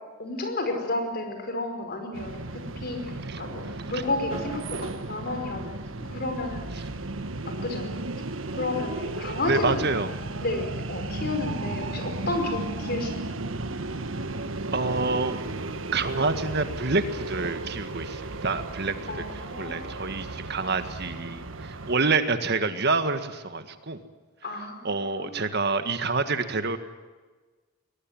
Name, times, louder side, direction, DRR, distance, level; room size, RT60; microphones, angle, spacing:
voice 1, 0.2-6.9 7.5-7.9 8.5-9.9 10.4-13.4 19.1-20.0 24.4-25.5, left 2 dB, 50° left, 5 dB, 5.2 m, -32 dB
sound 1, 2.1-22.0, right 2 dB, 75° right, 1.4 m, -34 dB
voice 2, 9.4-10.1 14.7-15.4 15.9-24.0 24.8-26.8, right 3 dB, 55° right, 9 dB, 1.7 m, -27 dB
22.0 x 20.0 x 9.4 m, 1.3 s
head